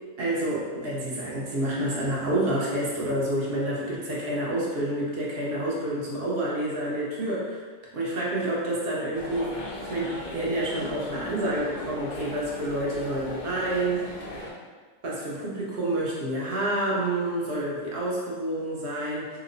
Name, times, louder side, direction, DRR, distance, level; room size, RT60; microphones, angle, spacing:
voice 1, 0.2-7.6 7.9-14.3 15.0-19.3, right 1 dB, 50° right, -5 dB, 0.8 m, -28 dB
sound 1, 9.1-14.5, left 1 dB, 60° left, 0.5 m, -38 dB
2.9 x 2.1 x 3.7 m, 1.5 s
omnidirectional pair, 1.5 m